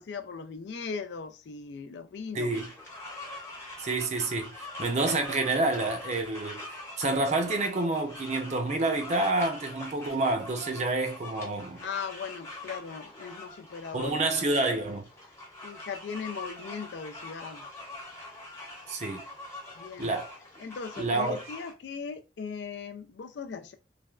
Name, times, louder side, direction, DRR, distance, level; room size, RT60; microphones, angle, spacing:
voice 1, 0.0-2.5 11.8-14.5 15.6-17.6 19.7-20.1 20.6-23.7, left 5 dB, 75° left, 0.4 m, -38 dB
voice 2, 2.3-2.7 3.8-6.6 7.0-11.8 13.9-15.0 18.9-19.2 20.0-20.3 21.0-21.4, right 2 dB, 40° right, 0.5 m, -28 dB
sound 1, 2.5-21.7, left 2 dB, 15° left, 0.8 m, -44 dB
3.2 x 2.3 x 2.3 m
head